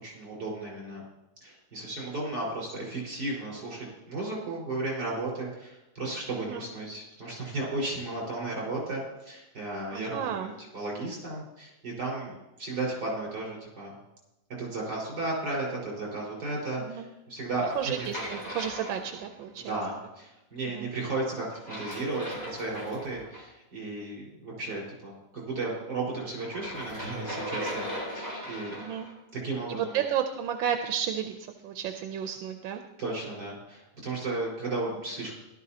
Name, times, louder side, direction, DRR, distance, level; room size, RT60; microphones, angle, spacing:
voice 1, 0.0-1.0 1.4-13.9 14.6-18.3 19.6-27.9 28.1-28.8 29.3-30.0 33.0-35.3, right 2 dB, 60° right, -4 dB, 5.3 m, -34 dB
voice 2, 9.9-10.5 16.9-17.1 17.7-19.8 20.7-20.9 28.7-29.1 29.7-31.3 31.6-32.8, right 9 dB, 90° right, 6 dB, 1.5 m, -32 dB
sound 1, 17.6-19.6 21.5-23.4 26.4-29.1, equal, 25° left, 4.3 m, -38 dB
16.0 x 12.0 x 2.9 m, 0.96 s
omnidirectional pair, 2.0 m